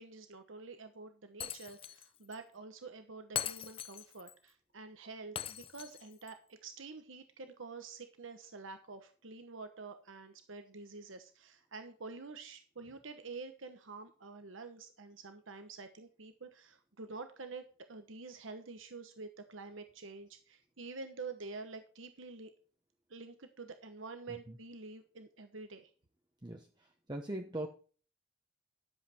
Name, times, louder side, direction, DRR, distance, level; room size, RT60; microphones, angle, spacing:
voice 1, 0.0-22.5 23.1-25.9, right 4 dB, 80° right, 8 dB, 1.1 m, -48 dB
Shatter, 1.4-2.1 2.3-2.4 3.4-4.3 5.4-6.3, left 10 dB, 25° left, 0.4 m, -41 dB
voice 2, 27.1-27.7, right 1 dB, 20° right, 3 dB, 0.9 m, -39 dB
11.0 x 7.6 x 4.4 m, 0.39 s
head